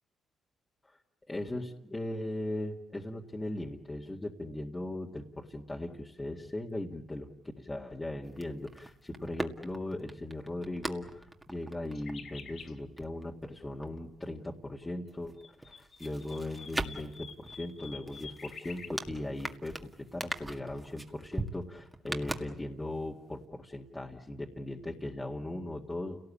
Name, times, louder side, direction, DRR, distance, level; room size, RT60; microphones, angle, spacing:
voice 1, 1.3-7.3 7.6-15.4 15.7-26.2, left 1 dB, 15° left, -2 dB, 2.0 m, -38 dB
sound 1, 8.2-14.8 15.1-23.0 23.3-23.4, right 2 dB, 15° right, 2.0 m, -42 dB
sound 2, 11.9-12.7 15.1-18.9, left 6 dB, 55° left, 2.8 m, -48 dB
29.5 x 18.0 x 8.6 m, 0.87 s
cardioid pair, 90°, 0 cm